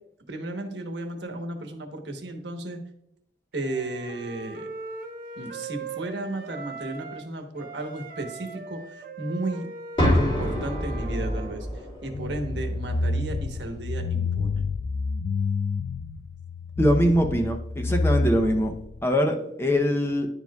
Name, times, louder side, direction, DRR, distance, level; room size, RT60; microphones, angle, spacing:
voice 1, 0.3-2.8 3.5-4.7 5.4-8.8 9.2-9.7 10.1-11.7 12.0-14.7, right 2 dB, 75° right, 4 dB, 1.1 m, -34 dB
Wind instrument woodwind instrument, 3.6-7.3 7.6-11.5, right 4 dB, 50° right, 0.8 m, -40 dB
sound 1, 10.0-13.9, equal, 30° left, 2.1 m, -28 dB
sound 2, 12.1-19.0, left 3 dB, 60° left, 0.3 m, -28 dB
voice 2, 16.8-18.7 19.0-20.3, equal, 15° left, 4 dB, 0.7 m, -22 dB
10.5 x 4.8 x 2.3 m, 0.83 s
head